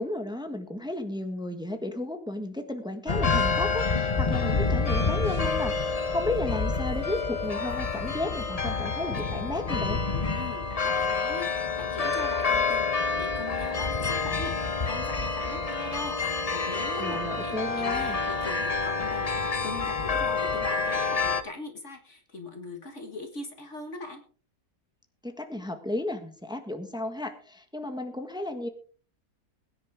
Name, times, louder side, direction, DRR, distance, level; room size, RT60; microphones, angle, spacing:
voice 1, 0.0-10.0 17.0-18.2 25.2-28.7, left 1 dB, 5° right, 6 dB, 1.4 m, -33 dB
sound 1, 3.1-21.4, left 4 dB, 30° left, 0.9 m, -28 dB
voice 2, 10.3-24.2, left 3 dB, 50° left, 5 dB, 1.9 m, -41 dB
21.5 x 9.9 x 3.6 m, 0.41 s
omnidirectional pair, 1.7 m